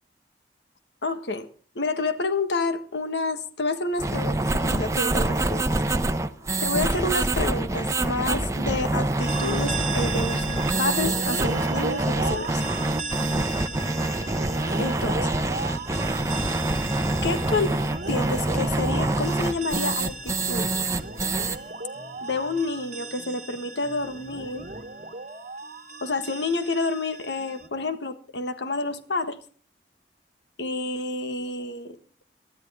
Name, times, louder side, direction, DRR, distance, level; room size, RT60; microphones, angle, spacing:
voice 1, 1.0-1.5 1.7-5.7 6.6-12.6 14.8-15.3 17.2-17.7 18.0-20.7 22.2-24.7 26.0-29.4 30.6-32.0, left 3 dB, 90° left, 8 dB, 1.5 m, -29 dB
sound 1, 4.0-21.6, right 2 dB, 20° right, 0.8 m, -26 dB
sound 2, 5.3-25.1, equal, 50° left, 7.8 m, -52 dB
sound 3, 9.2-27.7, right 3 dB, 45° right, 1.4 m, -36 dB
19.5 x 12.5 x 3.6 m, 0.43 s
head